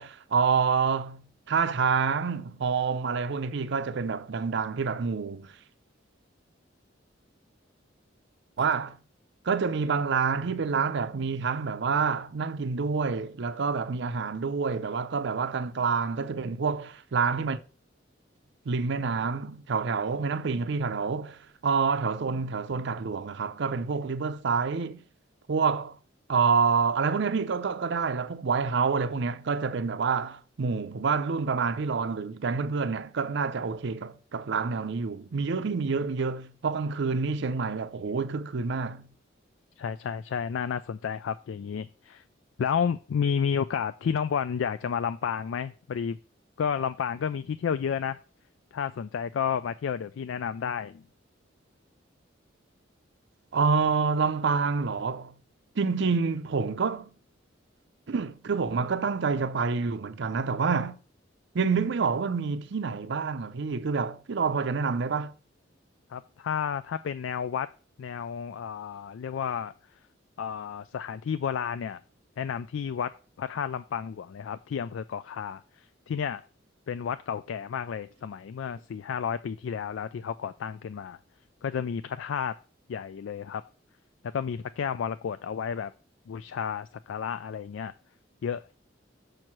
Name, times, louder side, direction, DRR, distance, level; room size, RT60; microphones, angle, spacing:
voice 1, 0.0-5.5 8.6-9.0 9.4-17.6 18.7-25.0 25.5-26.0 26.3-39.1 53.5-55.3 55.8-57.1 58.1-61.0 61.5-65.3, right 5 dB, 65° right, 0.5 m, -27 dB
voice 2, 39.8-42.2 42.6-46.2 46.6-48.2 48.7-51.0 66.1-67.7 68.0-69.7 70.4-72.0 72.4-73.1 73.4-75.6 76.1-76.4 76.9-81.2 81.6-82.5 82.9-83.6 84.2-85.9 86.3-87.9 88.4-88.6, left 7 dB, 80° left, 0.3 m, -31 dB
6.5 x 4.6 x 6.0 m
head